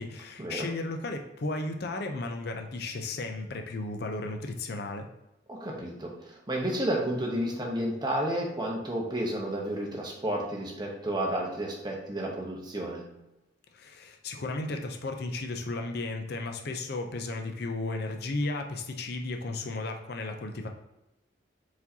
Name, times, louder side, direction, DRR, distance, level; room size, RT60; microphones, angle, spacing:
voice 1, 0.0-5.1 13.7-20.7, left 2 dB, 55° left, 4 dB, 0.5 m, -34 dB
voice 2, 5.5-13.0, right 1 dB, 20° right, -1 dB, 0.8 m, -31 dB
4.6 x 4.2 x 2.7 m, 0.93 s
head